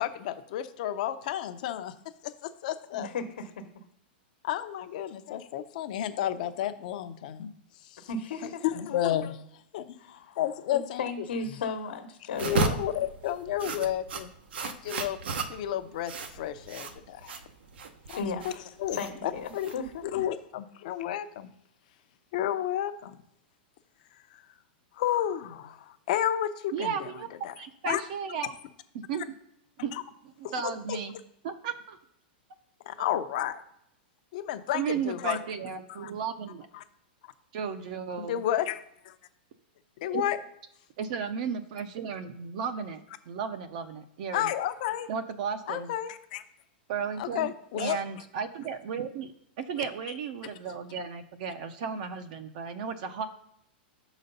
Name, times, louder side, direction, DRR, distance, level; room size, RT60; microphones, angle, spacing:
voice 1, 0.0-1.9 2.2-3.1 4.4-7.5 7.8-8.1 8.6-9.4 9.7-11.0 12.4-14.3 14.6-15.2 15.5-17.4 18.1-18.5 18.8-19.7 20.0-21.5 22.3-23.2 24.9-27.5 27.9-28.0 29.9-30.0 30.4-31.0 32.8-33.6 34.3-35.4 36.0-36.1 36.7-36.8 38.2-39.1 40.0-40.4 44.3-45.1 45.7-46.4 47.2-48.0 49.8-49.9, left 11 dB, 45° left, 10 dB, 0.6 m, -31 dB
voice 2, 2.9-3.5 8.1-9.0 10.0-10.4 10.7-12.8 18.2-18.4 19.0-20.0, left 4 dB, 80° left, 4 dB, 1.1 m, -35 dB
sound 1, 12.3-20.2, right 4 dB, 80° right, 0.9 m, -34 dB
voice 3, 26.7-28.5 28.9-29.3 29.8-29.9 30.4-31.1 31.4-32.0 34.7-36.7 37.5-38.4 40.1-40.2 41.0-44.5 45.1-45.9 46.9-49.3 49.6-53.3, right 6 dB, 45° right, 8 dB, 0.6 m, -34 dB
6.6 x 4.0 x 5.4 m, 0.77 s
supercardioid pair, 170°, 6 cm